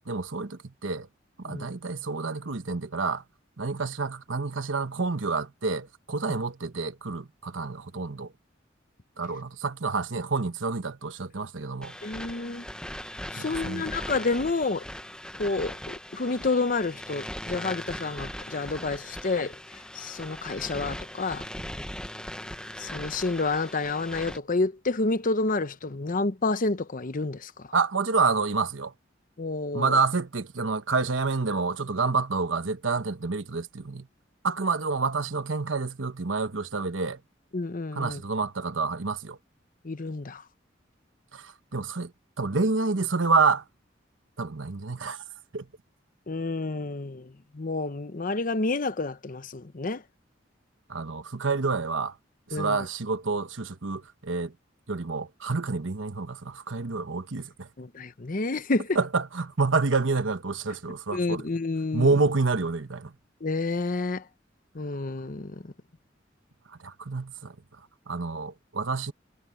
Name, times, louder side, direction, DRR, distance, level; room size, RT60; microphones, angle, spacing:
voice 1, 0.1-1.1 1.4-3.2 3.6-8.3 9.2-12.0 13.4-13.8 27.7-28.9 29.7-34.1 34.4-37.2 37.9-39.4 41.3-42.1 42.4-43.6 44.4-45.2 45.5-45.7 50.9-52.1 52.5-54.5 54.9-57.7 58.9-61.4 61.9-63.1 66.7-67.6 68.1-69.1, right 4 dB, 90° right, 1.1 m, -28 dB
sound 1, 11.8-24.4, left 1 dB, 5° left, 1.2 m, -39 dB
voice 2, 12.0-12.6 13.3-14.8 15.4-19.6 19.9-21.5 22.8-27.7 29.4-30.0 37.5-38.2 39.8-40.4 46.3-50.0 52.5-52.9 57.8-59.0 61.1-62.1 63.4-64.2 64.7-65.7, left 3 dB, 45° left, 0.9 m, -29 dB
head